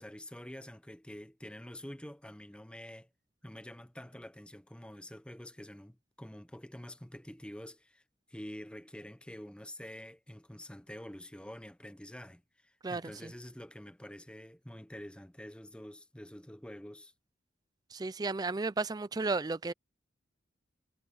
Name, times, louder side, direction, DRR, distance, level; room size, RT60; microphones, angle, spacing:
voice 1, 0.0-3.1 3.4-8.0 8.3-17.1, left 1 dB, 5° left, 0.8 m, -47 dB
voice 2, 12.8-13.3 17.9-19.7, right 3 dB, 20° right, 0.4 m, -34 dB
head